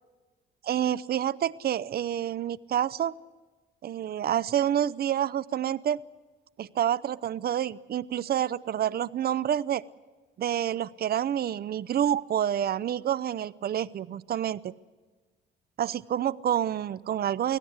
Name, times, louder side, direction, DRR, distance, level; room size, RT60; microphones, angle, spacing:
voice 1, 0.6-3.2 3.8-6.0 6.6-9.8 10.4-14.7 15.8-17.6, right 10 dB, 50° right, 19 dB, 0.6 m, -28 dB
24.5 x 17.0 x 8.0 m, 1.3 s
cardioid pair, 90°, 20 cm